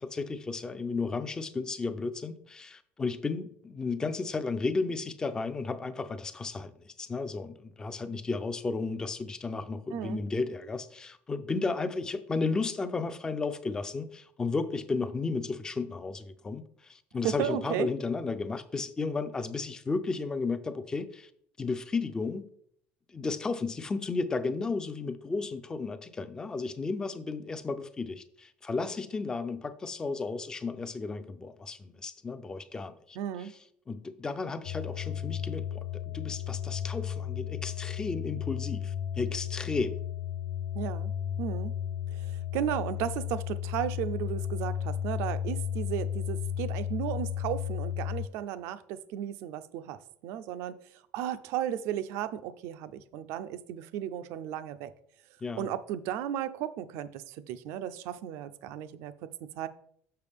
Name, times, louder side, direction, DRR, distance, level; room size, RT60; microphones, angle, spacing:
voice 1, 0.0-21.3 21.6-22.5 23.1-33.5 33.9-40.0 55.4-55.7, left 4 dB, 15° left, 0.4 m, -33 dB
voice 2, 9.9-10.2 17.2-17.9 33.2-33.5 40.7-41.1 41.4-41.7 42.1-54.9 55.6-59.7, right 11 dB, 70° right, 0.5 m, -35 dB
sound 1, 34.6-48.3, left 9 dB, 80° left, 0.4 m, -34 dB
6.8 x 6.3 x 3.5 m
cardioid pair, 165°, 5 cm